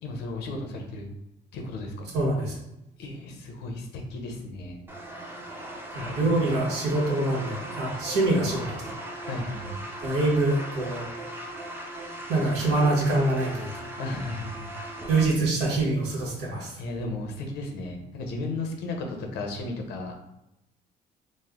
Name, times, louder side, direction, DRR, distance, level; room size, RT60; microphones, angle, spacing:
voice 1, 0.0-1.1 1.5-2.1 3.0-4.8 6.0-6.5 9.2-9.8 14.0-15.1 16.8-20.1, left 2 dB, 85° left, 3 dB, 0.7 m, -35 dB
voice 2, 2.1-2.6 5.9-8.9 10.0-11.0 12.3-13.7 15.1-16.7, right 2 dB, 80° right, -2 dB, 1.1 m, -25 dB
sound 1, 4.9-15.3, right 1 dB, 15° right, 0.6 m, -38 dB
3.2 x 2.0 x 3.5 m, 0.86 s
cardioid pair, 110°, 17 cm